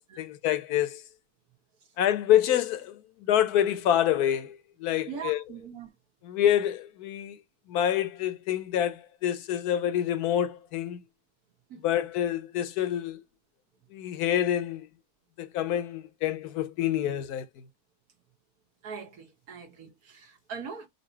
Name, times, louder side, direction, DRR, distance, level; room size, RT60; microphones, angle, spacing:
voice 1, 0.2-1.0 2.0-5.4 6.2-7.4 7.7-11.0 11.8-13.2 13.9-14.9 15.4-17.6, left 11 dB, 80° left, 1.2 m, -27 dB
voice 2, 5.1-5.9 11.7-11.8 18.8-20.9, right 6 dB, 70° right, 1.6 m, -41 dB
4.0 x 2.7 x 4.3 m
omnidirectional pair, 1.7 m